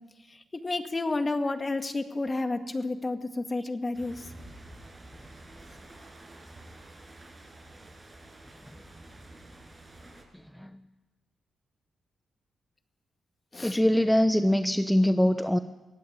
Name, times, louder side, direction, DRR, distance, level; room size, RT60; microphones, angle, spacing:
voice 1, 0.3-4.3 13.5-13.8, left 2 dB, 30° left, 7 dB, 2.0 m, -31 dB
sound 1, 3.9-10.2, right 1 dB, 25° right, 6.8 m, -49 dB
voice 2, 13.6-15.6, equal, 5° left, 9 dB, 0.9 m, -23 dB
23.0 x 16.5 x 9.0 m, 1.1 s
cardioid pair, 65°, 0 cm